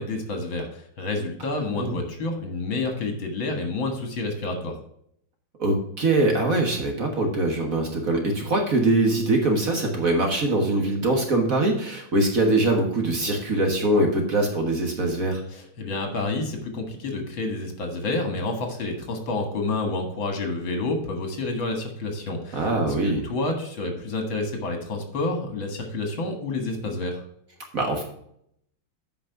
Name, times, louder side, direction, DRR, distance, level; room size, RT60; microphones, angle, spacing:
voice 1, 0.0-4.8 15.5-22.7 23.0-27.2, left 2 dB, 70° left, 4 dB, 2.4 m, -29 dB
voice 2, 5.6-15.4 22.5-23.2 27.7-28.0, right 2 dB, 45° right, 2 dB, 1.7 m, -23 dB
8.5 x 5.3 x 5.7 m, 0.70 s
omnidirectional pair, 2.3 m